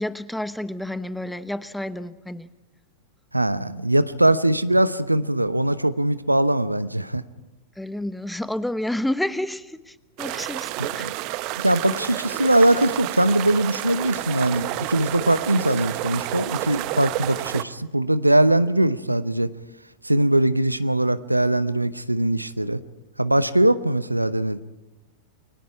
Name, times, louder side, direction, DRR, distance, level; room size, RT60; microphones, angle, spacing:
voice 1, 0.0-2.5 7.8-11.1, left 1 dB, 5° left, 15 dB, 0.9 m, -30 dB
voice 2, 3.3-7.2 10.8-11.1 11.6-19.5 20.0-22.8 23.2-24.6, right 1 dB, 90° right, 14 dB, 0.9 m, -21 dB
sound 1, 10.2-17.6, right 17 dB, 45° right, 1.0 m, -30 dB
29.5 x 22.5 x 4.8 m, 1.1 s
figure-of-eight pair, 95°, 0 cm